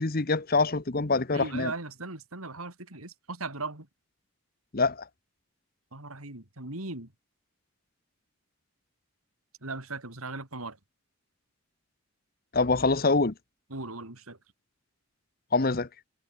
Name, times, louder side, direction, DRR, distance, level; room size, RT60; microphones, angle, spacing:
voice 1, 0.0-1.7 4.7-5.0 12.5-13.3 15.5-15.9, left 3 dB, 45° left, 1.0 m, -25 dB
voice 2, 1.3-3.9 5.9-7.1 9.6-10.8 13.7-14.4, right 3 dB, 90° right, 4.4 m, -38 dB
head